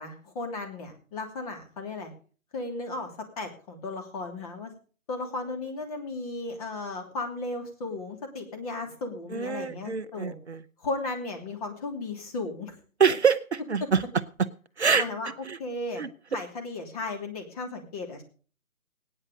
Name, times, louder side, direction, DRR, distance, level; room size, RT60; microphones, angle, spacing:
voice 1, 0.0-2.1 2.5-4.7 5.1-10.4 10.8-12.7 14.9-15.3 15.6-16.0 16.3-18.2, left 2 dB, 25° left, 3 dB, 3.0 m, -35 dB
voice 2, 9.3-10.6 13.0-14.0 14.8-15.0 15.5-15.6 16.0-16.1, right 6 dB, 50° right, 12 dB, 0.8 m, -25 dB
17.5 x 9.9 x 5.3 m, 0.41 s
figure-of-eight pair, 155°, 42 cm